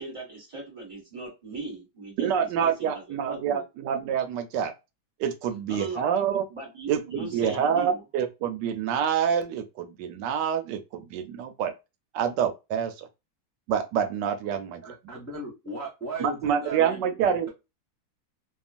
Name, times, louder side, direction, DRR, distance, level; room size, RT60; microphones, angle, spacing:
voice 1, 0.0-3.6 5.7-6.1 6.5-8.0, right 3 dB, 20° right, 1.4 m, -38 dB
voice 2, 2.2-4.7 5.2-6.5 6.9-11.7 12.1-13.1 13.7-14.8 16.2-17.5, right 8 dB, 85° right, 1.2 m, -27 dB
voice 3, 14.5-17.5, equal, 10° left, 0.9 m, -37 dB
2.9 x 2.4 x 2.4 m
omnidirectional pair, 1.8 m